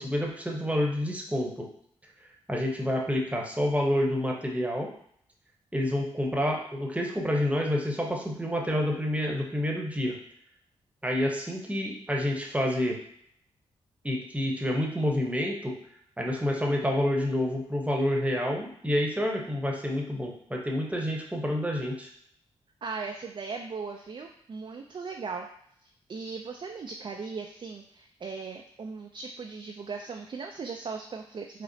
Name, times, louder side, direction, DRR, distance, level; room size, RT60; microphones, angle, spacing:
voice 1, 0.0-1.6 2.5-4.9 5.7-10.2 11.0-13.0 14.0-15.7 16.2-22.1, left 1 dB, 10° right, 0 dB, 0.9 m, -28 dB
voice 2, 22.8-25.5 26.1-31.6, right 4 dB, 45° right, 2 dB, 0.4 m, -38 dB
4.9 x 2.0 x 2.7 m, 0.67 s
supercardioid pair, 45°, 12 cm